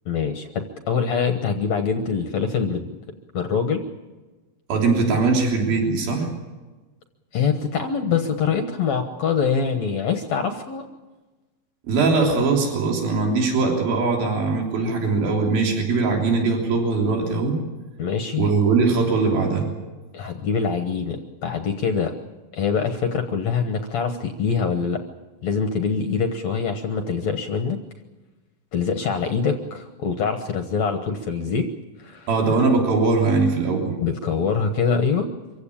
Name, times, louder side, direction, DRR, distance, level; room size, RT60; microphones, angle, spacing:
voice 1, 0.1-2.9 3.3-3.8 7.3-10.9 18.0-18.5 20.1-22.1 22.5-25.0 25.4-27.8 28.7-31.7 32.0-32.3 34.0-35.3, left 6 dB, 65° left, 6 dB, 2.0 m, -24 dB
voice 2, 4.7-6.3 11.8-17.6 18.4-19.7 32.3-34.0, right 4 dB, 70° right, 0 dB, 5.2 m, -21 dB
25.5 x 16.0 x 8.7 m, 1.2 s
omnidirectional pair, 4.4 m